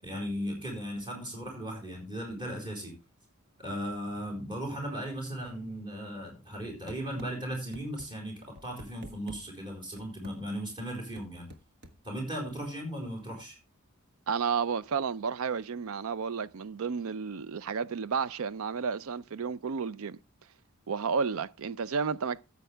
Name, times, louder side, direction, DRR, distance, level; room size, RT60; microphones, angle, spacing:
voice 1, 0.0-2.9 3.6-11.5 12.0-13.6, equal, 20° right, 4.5 m, -37 dB
sound 1, 6.9-7.3 7.7-8.1 8.6-9.4 10.0-10.4 11.2-12.0, right 1 dB, 50° right, 1.4 m, -47 dB
voice 2, 14.3-20.2 20.9-22.4, right 6 dB, 70° right, 0.5 m, -32 dB
14.0 x 8.2 x 3.3 m
head